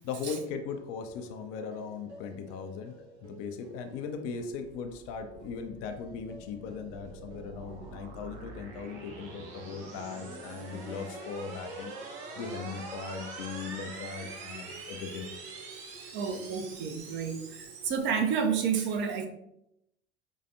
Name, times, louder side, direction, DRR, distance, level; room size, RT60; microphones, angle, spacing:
voice 1, 0.0-3.0 3.2-11.9 12.4-15.3, left 5 dB, 45° left, 6 dB, 0.5 m, -38 dB
sound 1, 0.7-18.3, right 3 dB, 85° right, 1.0 m, -52 dB
sound 2, 4.5-17.9, right 3 dB, 50° right, 0.9 m, -45 dB
voice 2, 16.1-19.3, right 6 dB, 35° right, 4 dB, 0.6 m, -30 dB
5.5 x 3.2 x 2.5 m, 0.82 s
figure-of-eight pair, 70°, 33 cm